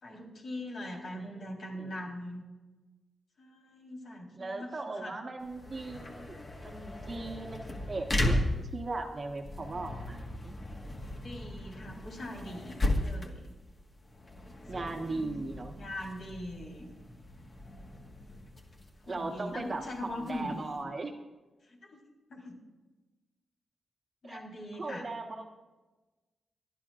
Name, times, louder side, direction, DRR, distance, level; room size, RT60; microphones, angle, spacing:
voice 1, 0.0-2.4 3.4-5.2 11.1-13.5 14.7-15.4 15.8-16.9 19.1-20.9 21.6-22.0 22.3-22.6 24.2-25.1, left 1 dB, 65° left, -2 dB, 3.9 m, -42 dB
voice 2, 4.3-6.4 6.6-10.6 14.7-15.7 19.1-21.1 24.2-24.4 24.8-25.5, right 3 dB, 35° right, 3 dB, 1.4 m, -38 dB
sound 1, 5.4-20.8, left 1 dB, 30° left, 1.6 m, -36 dB
27.5 x 11.5 x 2.5 m, 1.2 s
wide cardioid pair, 115°, 0 cm